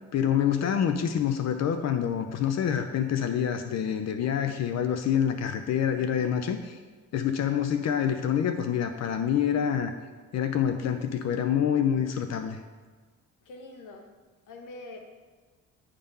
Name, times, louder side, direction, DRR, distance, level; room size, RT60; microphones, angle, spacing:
voice 1, 0.1-6.8 7.1-9.9 10.3-12.6, left 8 dB, 60° left, 8 dB, 0.6 m, -26 dB
voice 2, 13.4-14.1 14.5-15.0, left 2 dB, 85° left, 3 dB, 1.3 m, -44 dB
10.0 x 3.7 x 5.4 m, 1.4 s
cardioid pair, 90°, 30 cm